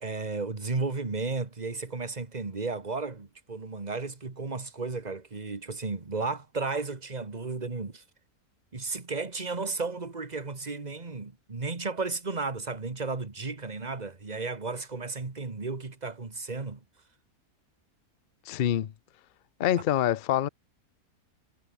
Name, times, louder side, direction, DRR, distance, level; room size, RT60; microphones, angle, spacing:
voice 1, 0.0-8.0 8.7-16.8, right 3 dB, 25° right, 1.9 m, -34 dB
voice 2, 18.5-18.9 19.6-20.5, left 11 dB, 60° left, 0.5 m, -25 dB
omnidirectional pair, 1.7 m